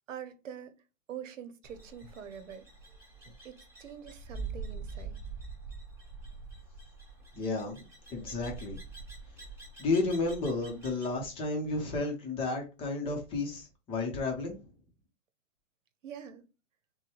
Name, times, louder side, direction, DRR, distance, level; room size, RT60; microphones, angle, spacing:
voice 1, 0.1-0.7 1.1-2.6 3.4-5.2 16.0-16.4, right 8 dB, 85° right, 0.9 m, -44 dB
sound 1, 1.6-11.1, right 4 dB, 5° right, 1.2 m, -45 dB
voice 2, 7.4-8.8 9.8-14.6, left 3 dB, 15° left, 0.7 m, -32 dB
6.4 x 2.2 x 3.1 m
hypercardioid pair, 155°, 37 cm